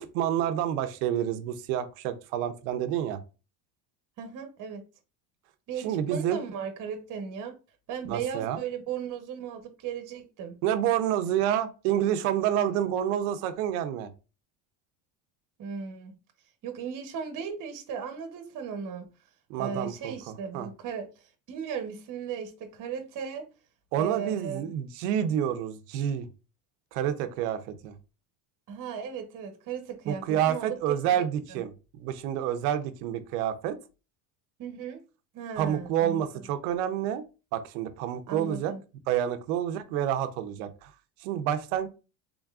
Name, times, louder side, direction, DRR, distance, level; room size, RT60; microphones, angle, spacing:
voice 1, 0.0-3.2 5.8-6.4 8.1-8.6 10.6-14.1 19.5-20.7 23.9-26.3 26.9-27.9 30.1-33.8 35.6-37.2 37.5-38.7 39.1-40.9 41.2-41.9, right 10 dB, 85° right, 0.7 m, -28 dB
voice 2, 4.2-4.8 5.7-7.5 7.9-10.6 15.6-16.2 16.6-19.1 19.6-21.1 21.5-23.5 23.9-24.7 28.7-30.8 31.5-31.6 34.6-35.0 35.3-36.4 38.3-38.8, right 7 dB, 45° right, 1.0 m, -36 dB
3.7 x 3.5 x 2.4 m
supercardioid pair, 115°, 44 cm